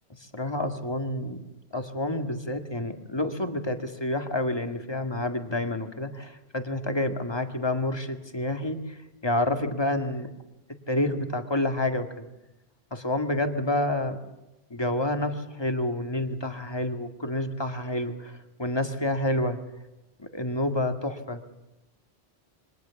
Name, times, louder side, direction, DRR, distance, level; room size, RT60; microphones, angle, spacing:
voice 1, 0.3-1.4 1.7-9.0 9.2-10.3 10.9-12.3 12.9-14.2 14.7-19.6 20.2-21.4, left 1 dB, 25° left, 6 dB, 2.0 m, -28 dB
27.0 x 23.0 x 7.1 m, 1.0 s
omnidirectional pair, 1.1 m